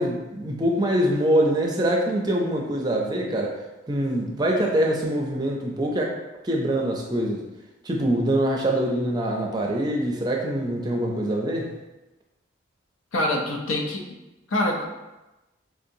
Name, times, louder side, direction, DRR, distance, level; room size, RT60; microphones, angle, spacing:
voice 1, 0.0-3.6 3.9-6.1 6.4-7.4 7.8-11.7, right 1 dB, 20° right, 0 dB, 0.4 m, -24 dB
voice 2, 13.1-14.0 14.5-14.9, left 1 dB, 85° left, 1 dB, 0.6 m, -25 dB
4.5 x 2.8 x 2.6 m, 1.0 s
head